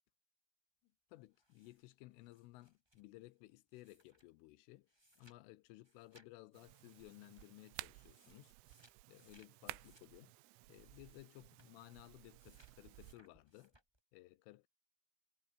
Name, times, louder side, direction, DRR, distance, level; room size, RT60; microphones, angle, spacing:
voice 1, 0.8-4.9 5.2-8.5 9.1-10.3 10.7-13.8 14.1-14.7, left 19 dB, 80° left, 3.3 m, -58 dB
sound 1, 1.3-4.4 4.9-5.4 5.6-6.3 6.8-7.5 7.9-11.3 11.6-11.8 12.4-14.0, right 1 dB, 5° right, 5.2 m, -71 dB
sound 2, 6.5-13.1, right 21 dB, 90° right, 3.5 m, -55 dB
omnidirectional pair, 5.9 m